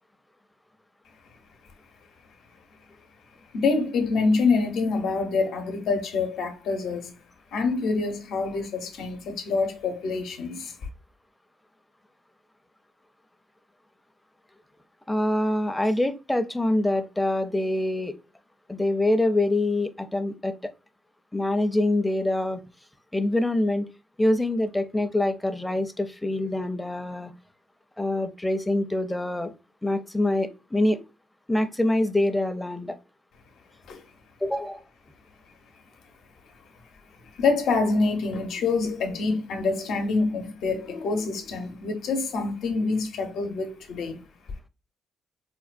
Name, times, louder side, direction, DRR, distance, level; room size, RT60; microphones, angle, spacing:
voice 1, 3.5-7.1 7.5-10.8 33.9-34.0 37.3-44.2, left 4 dB, 75° left, 0.8 m, -26 dB
voice 2, 15.1-18.2 18.7-20.6 21.3-22.6 23.1-23.9 24.2-27.3 28.0-29.5 29.8-31.0 31.5-33.0 34.4-34.8, left 1 dB, 10° left, 0.5 m, -25 dB
4.3 x 2.2 x 2.5 m
cardioid pair, 90°, 0 cm